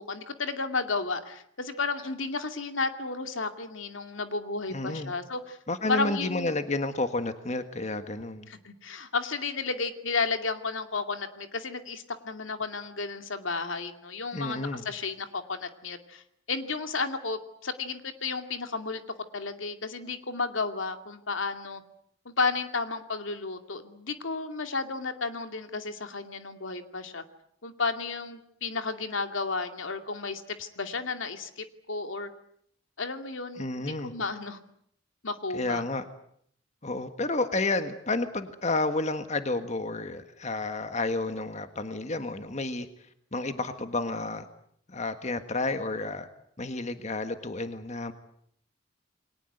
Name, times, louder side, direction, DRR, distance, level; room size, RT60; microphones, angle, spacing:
voice 1, 0.0-5.6 5.9-6.5 8.5-19.0 19.3-21.8 22.2-27.2 27.6-32.3 33.0-34.6 35.2-35.8, left 4 dB, 80° left, 7 dB, 2.4 m, -33 dB
voice 2, 4.7-5.1 5.7-8.5 14.3-14.8 33.6-34.1 35.5-36.0 36.8-42.9 43.3-44.5 44.9-46.3 46.6-48.1, left 2 dB, 35° left, 9 dB, 1.6 m, -31 dB
29.0 x 22.5 x 8.0 m, 0.68 s
head